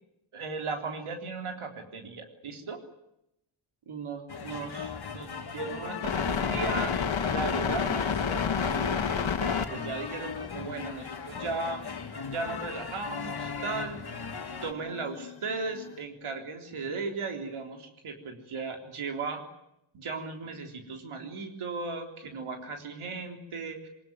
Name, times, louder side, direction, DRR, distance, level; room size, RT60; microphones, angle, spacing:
voice 1, 0.3-2.8 3.9-6.9 7.3-11.8 12.3-14.0 14.6-19.4 19.9-23.9, right 4 dB, 80° right, 4 dB, 3.8 m, -36 dB
sound 1, 4.3-14.7, left 5 dB, 50° left, 2.5 m, -38 dB
sound 2, 6.0-9.6 10.7-10.8 11.7-12.4 13.1-16.0, left 6 dB, 65° left, 2.6 m, -30 dB
23.0 x 21.0 x 9.3 m, 0.83 s
wide cardioid pair, 90°, 49 cm